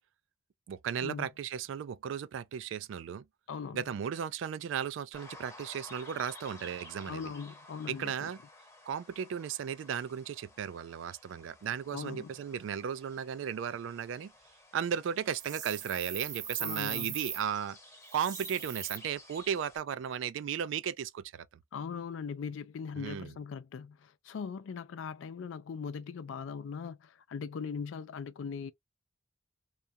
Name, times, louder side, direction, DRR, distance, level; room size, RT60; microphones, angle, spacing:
voice 1, 0.7-3.3 3.7-7.2 7.9-8.4 8.9-14.3 14.7-17.8 18.1-21.5 23.0-23.3, right 8 dB, 70° right, 0.3 m, -35 dB
voice 2, 3.5-3.8 7.1-8.3 11.9-12.3 16.6-17.2 21.7-28.7, left 6 dB, 70° left, 0.4 m, -40 dB
sound 1, 5.1-19.8, left 2 dB, 15° left, 0.8 m, -54 dB
sound 2, 15.3-17.4 18.1-19.0, right 8 dB, 40° right, 0.8 m, -39 dB
2.4 x 2.2 x 2.6 m
head